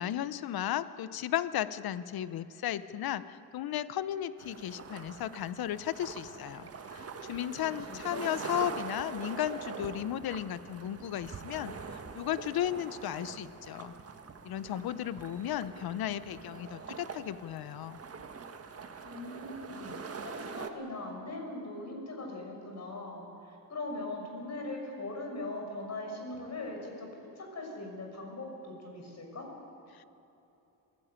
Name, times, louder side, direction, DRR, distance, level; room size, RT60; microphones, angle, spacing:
voice 1, 0.0-13.9 14.4-18.0 29.9-30.0, left 11 dB, 65° left, 14 dB, 0.9 m, -35 dB
sound 1, 4.4-20.7, right 5 dB, 35° right, 1.6 m, -44 dB
voice 2, 7.6-8.3 19.0-27.1 27.4-29.5, left 2 dB, 40° left, 2 dB, 6.2 m, -40 dB
22.0 x 16.5 x 9.0 m, 2.9 s
cardioid pair, 95°, 40 cm